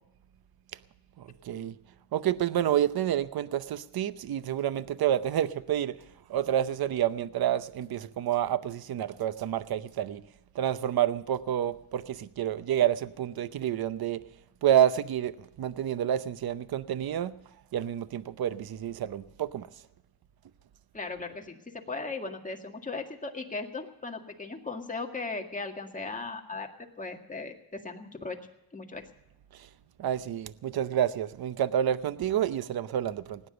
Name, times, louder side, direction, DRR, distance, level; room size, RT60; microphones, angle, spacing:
voice 1, 1.2-1.8 2.1-6.0 6.3-10.2 10.5-14.2 14.6-17.3 17.7-19.7 30.0-33.4, right 10 dB, 60° right, 0.8 m, -29 dB
voice 2, 20.9-26.7 27.0-28.4 28.7-29.1, left 3 dB, 20° left, 2.0 m, -37 dB
18.0 x 9.8 x 6.9 m
cardioid pair, 100°, 41 cm